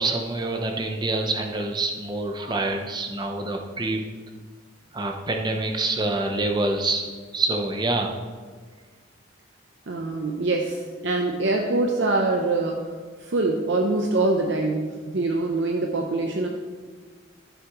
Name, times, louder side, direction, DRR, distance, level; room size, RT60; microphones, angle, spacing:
voice 1, 0.0-4.0 4.9-7.1 7.3-8.2, right 2 dB, 20° right, 3 dB, 0.8 m, -26 dB
voice 2, 9.9-12.9 13.2-16.5, right 2 dB, 65° right, 1 dB, 0.7 m, -24 dB
12.5 x 7.2 x 3.1 m, 1.5 s
head